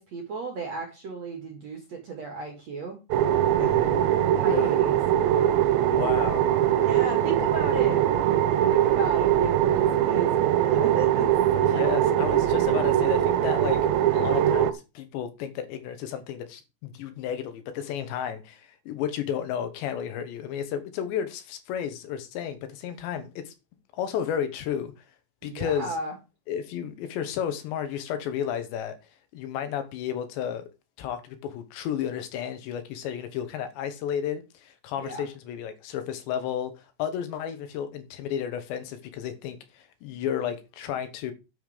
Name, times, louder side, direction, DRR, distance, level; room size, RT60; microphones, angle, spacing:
voice 1, 0.0-3.0 4.3-5.0 6.7-8.0 8.7-11.8 25.4-26.1 35.0-35.2, right 4 dB, 50° right, 2.2 m, -35 dB
sound 1, 3.1-14.7, right 11 dB, 75° right, 2.9 m, -22 dB
voice 2, 3.6-4.0 4.5-4.8 5.9-6.4 11.6-13.8 14.1-23.5 23.9-24.9 25.4-26.0 26.5-29.0 29.3-30.7 31.0-41.3, left 9 dB, 75° left, 3.3 m, -32 dB
9.5 x 7.2 x 5.0 m
omnidirectional pair, 5.4 m